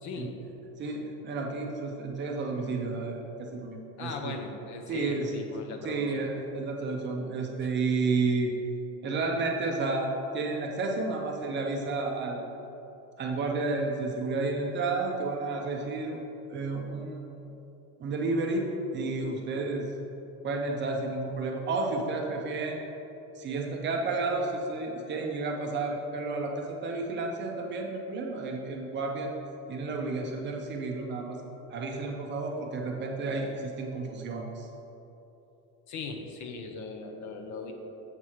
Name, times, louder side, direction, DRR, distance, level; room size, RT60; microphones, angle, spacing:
voice 1, 0.0-0.4 4.0-6.3 7.6-7.7 35.9-37.7, left 4 dB, 50° left, 4 dB, 0.7 m, -39 dB
voice 2, 0.8-4.4 4.9-5.3 5.8-8.5 9.0-12.5 13.2-16.2 16.5-17.5 18.0-19.9 20.4-22.8 23.4-29.3 29.7-31.4 31.7-34.7, right 3 dB, 30° right, 1 dB, 0.5 m, -31 dB
7.3 x 3.2 x 5.5 m, 3.0 s
cardioid pair, 160°, 38 cm